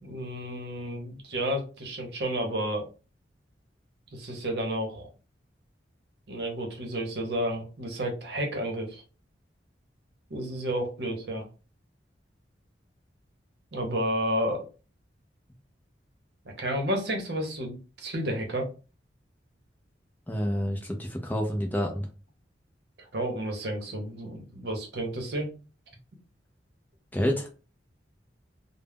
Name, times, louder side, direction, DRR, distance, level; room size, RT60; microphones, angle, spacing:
voice 1, 0.0-2.9 4.1-5.1 6.3-9.0 10.3-11.5 13.7-14.7 16.6-18.7 23.1-25.5, right 1 dB, 60° right, 2 dB, 0.8 m, -31 dB
voice 2, 20.3-22.1 27.1-27.5, equal, 10° left, 2 dB, 0.4 m, -28 dB
2.3 x 2.0 x 3.4 m, 0.34 s
head